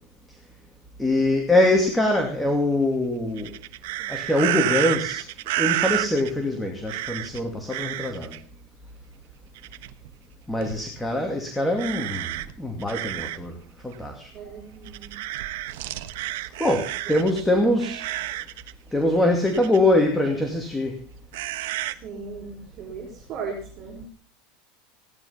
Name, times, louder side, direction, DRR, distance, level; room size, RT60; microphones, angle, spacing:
voice 1, 1.0-3.5 4.1-5.2 5.6-8.3 10.5-12.3 12.6-13.5 13.8-14.3 16.6-18.0 18.9-20.9, left 1 dB, 5° left, 2 dB, 2.5 m, -23 dB
sound 1, 3.4-6.3 6.9-7.4 7.7-8.4 9.6-10.1 10.6-10.8 11.8-13.5 13.9-14.0 14.9-17.4 17.8-18.7 19.5-19.8 21.3-21.9, right 16 dB, 75° right, 1.2 m, -30 dB
voice 2, 14.3-15.2 17.0-17.6 21.8-24.1, right 5 dB, 40° right, -1 dB, 5.0 m, -38 dB
17.0 x 10.5 x 5.8 m, 0.42 s
supercardioid pair, 145°, 0 cm